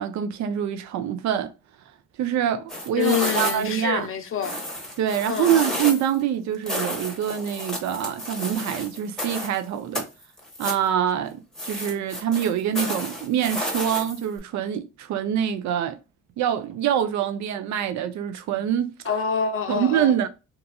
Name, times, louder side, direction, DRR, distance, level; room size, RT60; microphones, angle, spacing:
voice 1, 0.0-1.5 2.2-4.1 5.0-10.1 10.6-16.0 16.4-18.9 19.7-20.3, right 9 dB, 70° right, 0.5 m, -25 dB
sound 1, 2.7-3.8 4.4-6.1 6.7-9.6 9.9-10.9 11.6-14.4, equal, ahead, 1.0 m, -31 dB
voice 2, 3.0-4.6 5.3-5.5 19.1-20.1, left 7 dB, 45° left, 0.5 m, -26 dB
3.0 x 2.3 x 2.2 m
cardioid pair, 90°, 30 cm